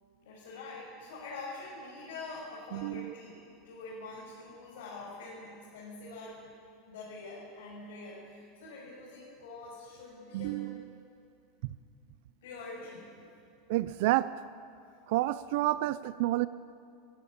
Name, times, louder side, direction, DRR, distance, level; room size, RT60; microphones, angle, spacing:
voice 1, 0.2-3.3 3.6-6.4 6.9-10.6 12.4-13.4, left 3 dB, 85° left, -6 dB, 6.4 m, -45 dB
voice 2, 2.7-3.1 10.3-11.1 13.7-14.3 15.1-16.5, right 16 dB, 60° right, 15 dB, 0.4 m, -30 dB
19.5 x 15.5 x 8.7 m, 2.4 s
supercardioid pair, 165°, 0 cm